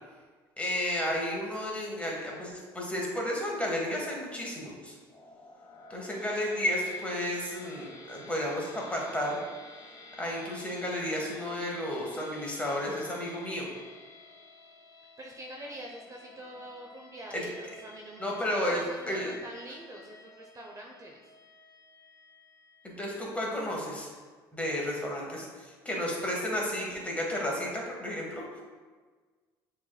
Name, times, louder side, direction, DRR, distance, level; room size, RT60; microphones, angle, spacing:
voice 1, 0.6-4.9 5.9-9.4 10.2-13.6 17.3-17.4 18.2-19.3 22.8-24.1 24.5-28.6, left 1 dB, 10° left, -2 dB, 1.4 m, -32 dB
sound 1, 5.1-23.3, left 2 dB, 35° left, 0.9 m, -52 dB
voice 2, 15.2-18.2 18.7-21.3, right 1 dB, 30° right, -1 dB, 0.7 m, -45 dB
6.9 x 3.3 x 2.3 m, 1.4 s
supercardioid pair, 75°, 11 cm